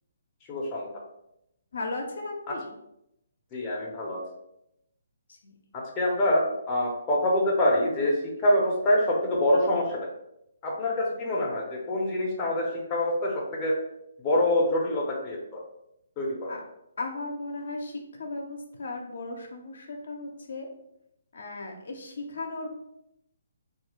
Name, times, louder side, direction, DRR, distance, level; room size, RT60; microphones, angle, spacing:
voice 1, 0.5-0.9 2.5-2.6 3.5-4.2 5.7-10.1 10.6-13.8 14.2-15.6 16.2-16.6, left 1 dB, 20° left, -3 dB, 0.6 m, -25 dB
voice 2, 1.7-2.7 5.3-5.5 16.5-16.6 17.0-20.7 21.3-22.8, left 2 dB, 65° left, 1 dB, 0.5 m, -36 dB
2.6 x 2.3 x 3.0 m, 0.81 s
hypercardioid pair, 150°, 0 cm